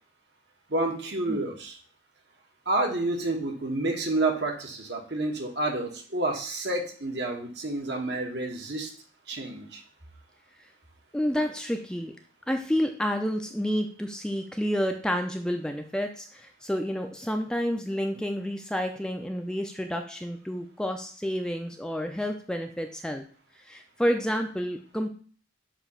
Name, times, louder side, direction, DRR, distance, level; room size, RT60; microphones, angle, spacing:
voice 1, 0.7-1.8 2.7-8.9 9.3-9.8, right 2 dB, 60° right, 2 dB, 1.4 m, -29 dB
voice 2, 11.1-12.1 12.5-23.2 23.7-25.1, equal, 5° left, 4 dB, 0.5 m, -29 dB
7.1 x 2.9 x 5.6 m, 0.42 s
head